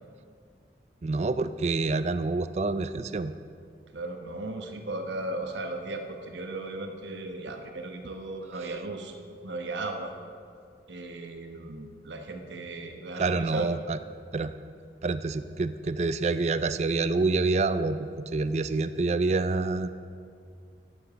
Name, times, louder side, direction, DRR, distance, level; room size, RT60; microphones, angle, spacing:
voice 1, 1.0-3.3 8.6-8.7 13.2-14.0 14.3-14.5 15.0-19.9, right 3 dB, 35° right, 12 dB, 0.4 m, -27 dB
voice 2, 3.9-9.2 9.4-10.1 10.9-13.7, right 2 dB, 80° right, 4 dB, 1.1 m, -36 dB
10.0 x 7.2 x 6.8 m, 2.3 s
head